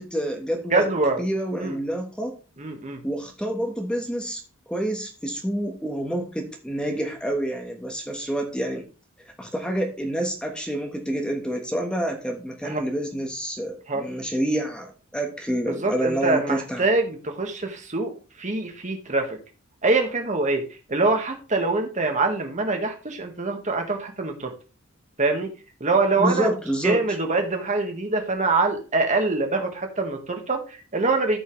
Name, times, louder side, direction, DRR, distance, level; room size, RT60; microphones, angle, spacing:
voice 1, 0.0-0.9 1.2-2.3 3.0-4.4 4.7-8.8 9.4-16.8 26.2-27.0, right 1 dB, 5° left, 2 dB, 1.3 m, -28 dB
voice 2, 0.7-1.2 1.5-1.8 2.6-3.0 12.6-12.8 13.9-14.1 15.7-19.4 19.8-24.5 25.2-25.5 25.8-26.5 26.8-31.4, right 3 dB, 35° right, 4 dB, 1.6 m, -24 dB
13.5 x 5.6 x 3.2 m, 0.34 s
head